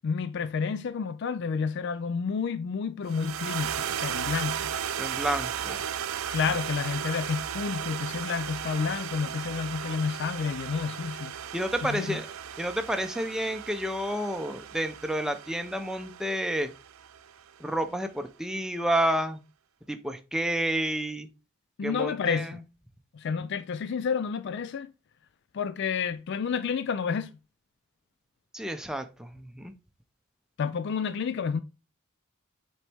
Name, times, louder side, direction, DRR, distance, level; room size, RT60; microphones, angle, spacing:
voice 1, 0.0-4.7 6.3-11.4 11.8-12.2 21.8-22.6 23.1-24.9 25.5-27.3 30.6-31.6, left 6 dB, 55° left, 0.3 m, -30 dB
sound 1, 3.1-17.5, right 9 dB, 80° right, 0.5 m, -36 dB
voice 2, 5.0-5.8 11.5-12.3 12.6-16.7 17.6-19.4 19.9-21.3 21.8-22.6 28.5-29.7, right 1 dB, 5° right, 0.6 m, -30 dB
7.3 x 4.1 x 3.4 m
head